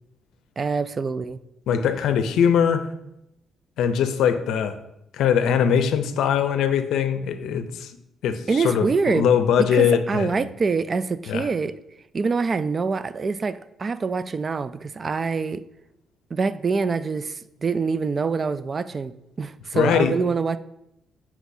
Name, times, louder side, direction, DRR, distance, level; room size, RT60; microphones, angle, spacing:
voice 1, 0.6-1.4 8.5-9.3 9.7-11.7 12.1-15.6 16.3-20.6, right 4 dB, 35° right, 14 dB, 0.3 m, -25 dB
voice 2, 1.7-2.9 3.8-4.8 5.1-7.9 8.2-10.4 11.3-11.5 19.7-20.2, left 8 dB, 80° left, 10 dB, 0.5 m, -21 dB
8.0 x 5.8 x 2.7 m, 0.85 s
cardioid pair, 90°, 0 cm